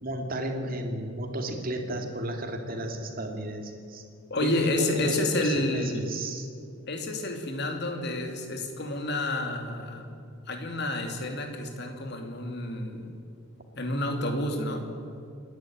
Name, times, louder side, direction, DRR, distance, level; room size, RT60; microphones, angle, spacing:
voice 1, 0.0-4.0 4.4-6.5, right 1 dB, 45° right, 4 dB, 2.5 m, -33 dB
voice 2, 4.3-6.1 6.9-10.1 10.5-13.1 13.7-14.9, left 1 dB, 55° left, 4 dB, 2.9 m, -30 dB
27.5 x 11.0 x 8.9 m, 2.3 s
head